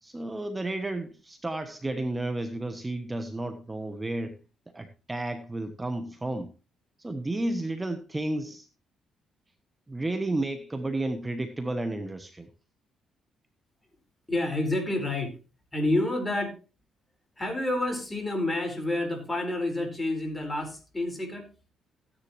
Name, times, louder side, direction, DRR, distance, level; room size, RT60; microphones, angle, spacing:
voice 1, 0.0-4.4 4.7-6.5 7.0-8.7 9.9-12.5, right 2 dB, 15° right, 8 dB, 1.1 m, -32 dB
voice 2, 14.3-15.4 15.7-16.6 17.4-21.5, left 1 dB, 15° left, 4 dB, 4.8 m, -29 dB
14.5 x 10.0 x 3.1 m, 0.31 s
cardioid pair, 90°, 0 cm